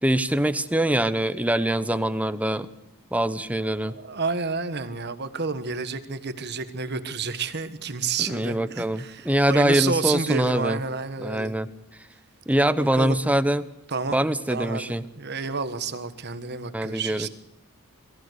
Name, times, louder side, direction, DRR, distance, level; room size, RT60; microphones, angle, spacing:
voice 1, 0.0-2.7 3.1-4.0 8.3-10.8 11.2-11.7 12.5-13.6 14.1-15.0 16.7-17.3, right 1 dB, 5° right, 12 dB, 0.8 m, -23 dB
voice 2, 3.8-11.5 12.8-13.2 13.9-14.2 14.5-17.3, right 4 dB, 50° right, 11 dB, 1.4 m, -30 dB
22.5 x 15.0 x 8.1 m, 0.86 s
head